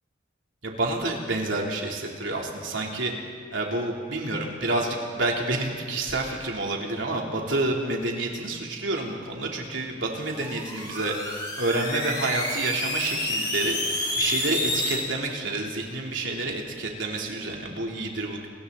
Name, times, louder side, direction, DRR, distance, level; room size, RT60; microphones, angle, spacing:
voice 1, 0.6-3.1 3.5-11.1 11.6-13.8 14.1-18.5, right 2 dB, 70° right, -1 dB, 3.6 m, -28 dB
sound 1, 10.2-15.0, left 1 dB, 25° left, 5.9 m, -29 dB
30.0 x 21.5 x 4.2 m, 2.1 s
head